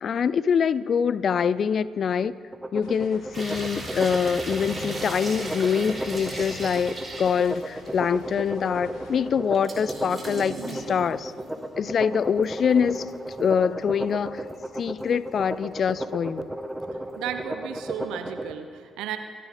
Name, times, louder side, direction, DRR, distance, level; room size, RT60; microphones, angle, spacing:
voice 1, 0.0-2.3 2.7-11.3 11.8-13.1 13.4-14.5 14.8-16.4, left 7 dB, 50° left, 18 dB, 0.4 m, -24 dB
sound 1, 2.5-18.5, right 1 dB, 10° right, 1.0 m, -34 dB
sound 2, 2.8-9.1, left 2 dB, 65° left, 2.7 m, -50 dB
sound 3, 3.3-8.1 8.5-8.6 9.5-11.7 12.2-13.5 13.9-15.1 15.5-16.0 16.3-16.4, right 2 dB, 35° right, 3.4 m, -38 dB
voice 2, 17.2-19.2, right 9 dB, 70° right, 8 dB, 0.7 m, -34 dB
25.0 x 9.3 x 3.7 m, 2.1 s
figure-of-eight pair, 40°, 0 cm